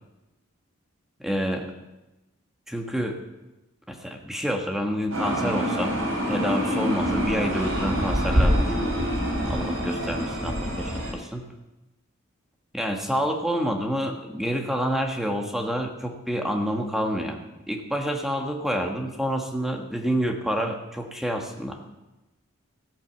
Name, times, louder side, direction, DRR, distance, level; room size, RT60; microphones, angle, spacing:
voice 1, 1.2-1.7 2.7-3.2 3.9-6.0 6.3-8.7 9.5-11.4 12.7-17.4 17.7-21.8, equal, ahead, 3 dB, 1.3 m, -28 dB
sound 1, 5.1-11.1, equal, 70° right, 4.2 m, -25 dB
16.0 x 8.6 x 6.9 m, 1.0 s
head